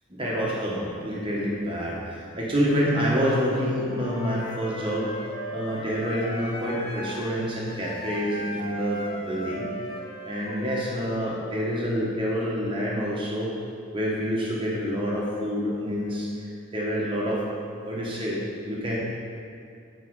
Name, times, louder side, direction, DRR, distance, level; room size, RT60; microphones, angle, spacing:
voice 1, 0.1-5.1 5.5-9.6 10.2-13.5 13.9-17.5 17.8-19.0, equal, 25° right, -5 dB, 1.3 m, -27 dB
Wind instrument woodwind instrument, 3.9-11.4, equal, 25° left, 0.7 m, -37 dB
8.6 x 4.7 x 4.8 m, 2.4 s
head